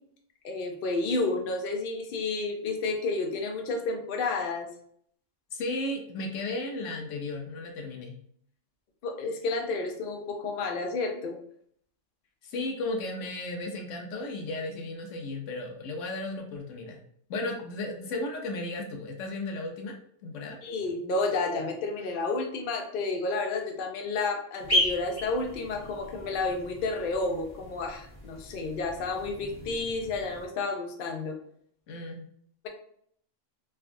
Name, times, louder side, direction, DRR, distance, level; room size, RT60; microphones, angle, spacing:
voice 1, 0.4-4.7 9.0-11.4 20.6-31.4, left 3 dB, 55° left, 2 dB, 0.6 m, -31 dB
voice 2, 5.5-8.2 12.4-17.0 17.3-20.0 20.2-20.6 31.9-32.2, left 2 dB, 80° left, 2 dB, 1.0 m, -34 dB
sound 1, 24.6-30.5, left 1 dB, 20° left, 0.9 m, -34 dB
3.3 x 2.3 x 2.5 m, 0.65 s
omnidirectional pair, 1.3 m